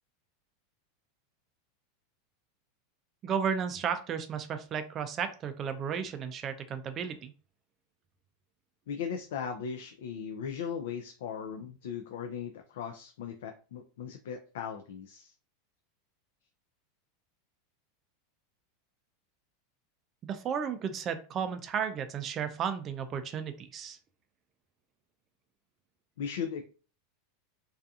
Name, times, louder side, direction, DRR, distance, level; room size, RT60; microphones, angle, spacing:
voice 1, 3.2-7.3 20.2-24.0, right 7 dB, 25° right, 8 dB, 0.3 m, -33 dB
voice 2, 8.9-15.3 26.2-26.6, left 7 dB, 80° left, 5 dB, 0.3 m, -38 dB
2.6 x 2.3 x 2.3 m, 0.37 s
supercardioid pair, 155°, 0 cm